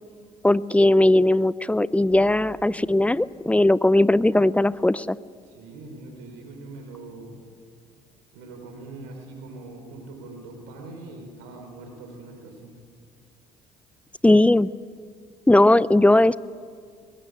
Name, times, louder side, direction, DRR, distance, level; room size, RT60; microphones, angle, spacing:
voice 1, 0.4-5.2 14.2-14.7 15.5-16.4, left 1 dB, 5° left, 20 dB, 0.5 m, -18 dB
sound 1, 2.1-4.9, left 3 dB, 60° left, 3.9 m, -48 dB
voice 2, 5.5-7.5 8.3-12.7, right 2 dB, 75° right, 3 dB, 4.6 m, -42 dB
21.5 x 16.0 x 8.5 m, 2.1 s
hypercardioid pair, 60°, 19 cm